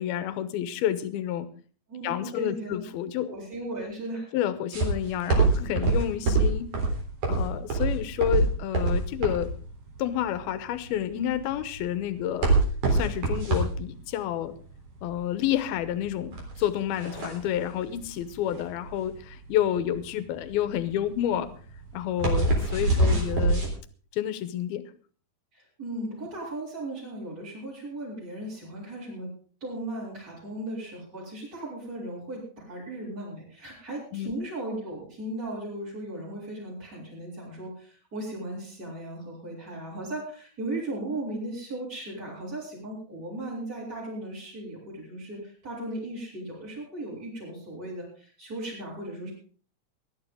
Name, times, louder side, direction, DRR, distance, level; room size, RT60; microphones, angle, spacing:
voice 1, 0.0-1.5 2.0-3.3 4.3-6.7 7.3-9.5 10.0-12.5 12.9-14.6 15.0-21.5 21.9-23.6 24.1-24.9 26.1-26.3 34.1-34.4, left 11 dB, 75° left, 13 dB, 2.8 m, -29 dB
voice 2, 1.9-2.8 3.3-4.3 22.8-23.2 25.5-29.3 29.6-49.3, right 1 dB, 20° right, -7 dB, 6.4 m, -37 dB
sound 1, 4.7-23.7, right 3 dB, 45° right, 4.8 m, -26 dB
20.0 x 12.0 x 3.8 m, 0.41 s
omnidirectional pair, 4.6 m